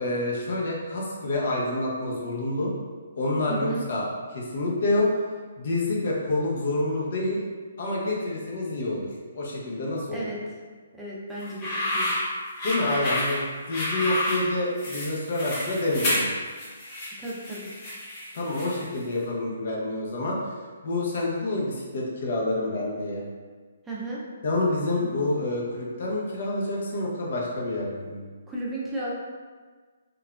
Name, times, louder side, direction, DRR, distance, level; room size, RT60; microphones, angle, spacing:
voice 1, 0.0-2.7 3.2-5.2 5.6-7.4 7.8-10.3 12.6-13.4 13.7-16.3 18.3-20.5 20.8-23.2 24.4-28.3, left 2 dB, 60° left, -3 dB, 0.7 m, -27 dB
voice 2, 3.5-3.8 10.1-10.4 11.0-12.1 17.2-17.7 23.9-24.2 28.5-29.2, right 2 dB, 10° right, -7 dB, 0.5 m, -34 dB
sound 1, 11.4-19.0, left 1 dB, 30° left, 0.9 m, -30 dB
3.3 x 2.3 x 2.4 m, 1.5 s
hypercardioid pair, 145°, 0 cm